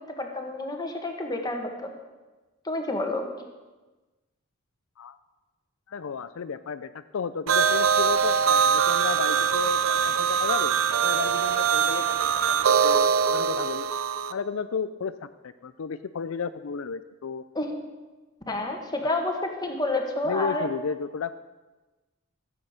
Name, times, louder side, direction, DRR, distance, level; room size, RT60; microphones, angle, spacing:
voice 1, 0.2-1.9 2.6-3.3 17.5-17.7 18.5-19.3 19.6-20.7, left 2 dB, 20° left, 2 dB, 1.6 m, -29 dB
voice 2, 5.9-10.7 11.0-13.9 14.3-17.4 20.2-21.3, left 6 dB, 80° left, 12 dB, 0.5 m, -33 dB
sound 1, 7.5-14.3, right 7 dB, 80° right, 0.5 m, -23 dB
14.5 x 7.7 x 6.6 m, 1.2 s
head